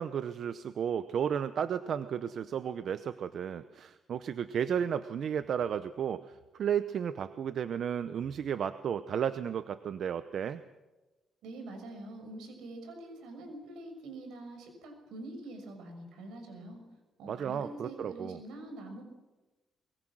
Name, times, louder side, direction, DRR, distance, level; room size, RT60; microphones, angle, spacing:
voice 1, 0.0-10.6 17.3-18.4, right 8 dB, 60° right, 12 dB, 0.8 m, -33 dB
voice 2, 11.4-16.8 17.2-19.0, right 2 dB, 85° right, 4 dB, 6.4 m, -45 dB
23.0 x 22.5 x 6.2 m, 1.1 s
cardioid pair, 90°, 0 cm